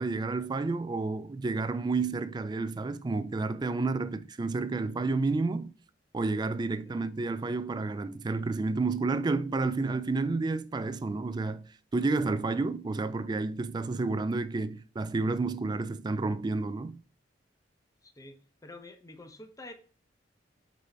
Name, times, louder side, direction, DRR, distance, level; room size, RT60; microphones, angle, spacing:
voice 1, 0.0-5.7 6.1-17.0, right 3 dB, 25° right, 0.3 m, -30 dB
voice 2, 18.0-18.4 18.6-19.7, left 2 dB, 20° left, 0.8 m, -48 dB
6.1 x 4.1 x 4.5 m
head